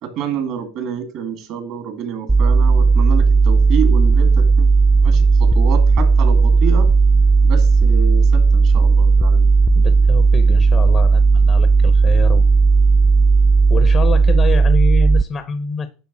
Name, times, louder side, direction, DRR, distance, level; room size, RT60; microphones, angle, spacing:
voice 1, 0.0-4.7 5.0-6.9 7.4-9.5, right 8 dB, 55° right, 2.1 m, -28 dB
sound 1, 2.3-15.2, right 4 dB, 10° right, 0.3 m, -13 dB
voice 2, 9.7-12.5 13.7-15.9, left 5 dB, 30° left, 0.8 m, -26 dB
9.8 x 3.4 x 6.0 m
supercardioid pair, 130°, 0 cm